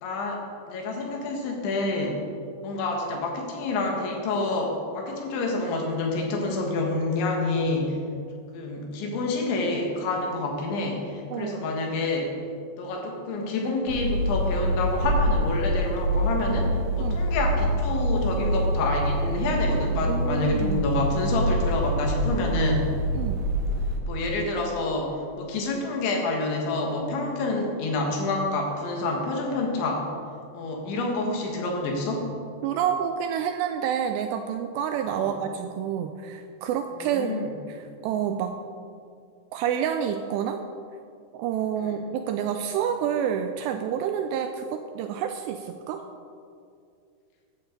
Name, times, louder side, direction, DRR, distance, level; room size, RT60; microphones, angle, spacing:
voice 1, 0.0-2.2 2.6-8.0 8.5-12.4 12.8-22.9 24.1-30.1 30.5-32.3 35.1-35.4 37.0-37.5 41.8-42.0, left 2 dB, 80° left, 1 dB, 4.0 m, -28 dB
voice 2, 11.3-11.6 17.0-17.2 20.1-20.8 23.2-23.4 32.6-37.3 37.7-37.8 38.0-38.6 39.5-40.6 41.3-46.0, right 8 dB, 85° right, 6 dB, 2.5 m, -28 dB
sound 1, 13.9-24.0, equal, 70° right, 2.1 m, -26 dB
15.5 x 11.0 x 3.9 m, 2.4 s
omnidirectional pair, 5.3 m